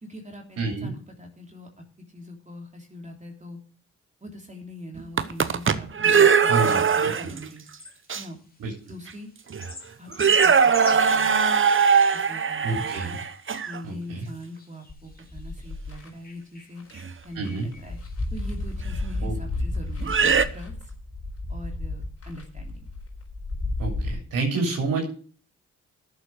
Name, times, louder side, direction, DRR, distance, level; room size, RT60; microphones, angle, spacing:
voice 1, 0.0-1.7 2.1-3.6 4.2-7.6 8.1-8.4 8.9-9.3 10.0-11.3 12.1-12.9 13.7-16.8 17.2-18.0 18.3-20.9 21.5-22.9, equal, 20° right, 1 dB, 3.2 m, -42 dB
voice 2, 0.6-0.9 6.5-7.3 8.6-8.7 12.6-13.2 13.8-14.3 17.3-17.7 19.2-19.4 23.8-25.0, right 3 dB, 75° right, 1 dB, 3.3 m, -28 dB
sound 1, 5.0-7.5 8.1-8.2 9.1-9.2 9.5-9.7 10.1-13.8 17.0-17.1 18.9-19.0 20.0-20.5, right 6 dB, 40° right, 1.0 m, -20 dB
sound 2, 6.8-18.8, left 2 dB, 25° left, 2.9 m, -47 dB
sound 3, 14.9-16.1 16.8-16.9 17.2-24.1, left 2 dB, 45° left, 4.0 m, -32 dB
11.0 x 7.3 x 6.3 m, 0.41 s
supercardioid pair, 45°, 32 cm